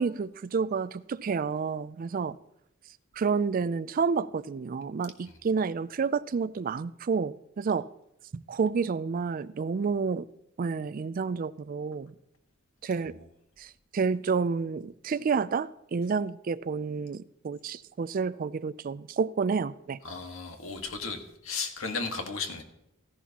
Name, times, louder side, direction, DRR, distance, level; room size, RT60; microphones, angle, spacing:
voice 1, 0.0-2.4 3.2-7.9 8.3-10.3 10.6-12.1 12.8-13.2 13.6-20.0, right 5 dB, 40° right, 0.3 m, -29 dB
voice 2, 20.0-22.6, left 4 dB, 75° left, 1.6 m, -35 dB
15.0 x 11.0 x 2.9 m
head